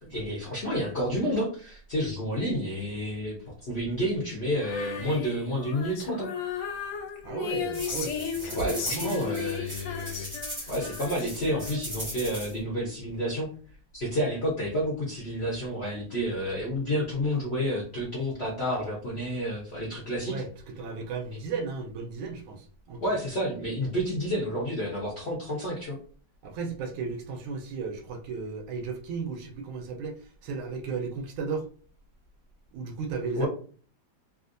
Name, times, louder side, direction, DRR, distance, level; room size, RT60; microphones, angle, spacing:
voice 1, 0.0-3.4 3.6-6.3 8.5-10.3 10.7-13.5 13.9-20.3 23.0-26.0 33.4-33.5, equal, 55° left, 0.7 m, -30 dB
Female singing, 4.5-12.0, left 7 dB, 70° left, 1.1 m, -35 dB
voice 2, 7.2-9.5 20.3-23.0 26.4-31.7 32.7-33.5, right 5 dB, 85° right, 1.4 m, -35 dB
sound 1, 7.7-12.5, equal, 15° right, 0.4 m, -39 dB
3.4 x 2.5 x 2.5 m
omnidirectional pair, 2.3 m